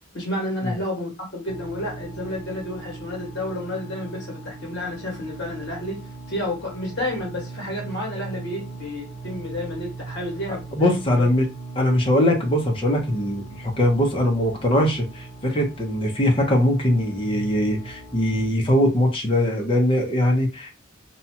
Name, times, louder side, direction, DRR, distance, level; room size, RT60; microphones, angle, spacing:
voice 1, 0.1-11.3, left 1 dB, 55° left, 1.4 m, -31 dB
sound 1, 1.5-18.5, right 3 dB, 70° right, 1.1 m, -39 dB
voice 2, 10.8-11.5 11.8-20.7, left 1 dB, 25° left, 0.7 m, -21 dB
2.8 x 2.3 x 2.8 m
head